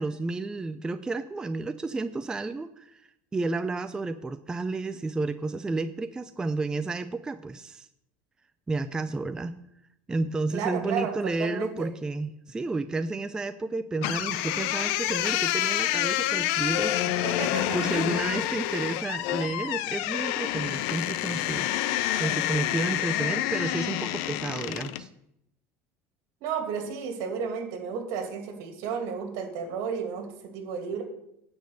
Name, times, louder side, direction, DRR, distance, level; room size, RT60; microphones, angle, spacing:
voice 1, 0.0-3.0 3.3-7.9 8.7-9.6 10.1-17.1 17.7-21.7 22.2-25.1, right 3 dB, 10° right, 10 dB, 0.4 m, -31 dB
voice 2, 10.5-11.9 17.2-17.9 18.8-18.9 26.4-31.0, right 6 dB, 65° right, 4 dB, 2.5 m, -33 dB
sound 1, 14.0-25.1, left 14 dB, 75° left, 0.6 m, -28 dB
10.5 x 5.2 x 7.8 m, 0.79 s
cardioid pair, 140°, 7 cm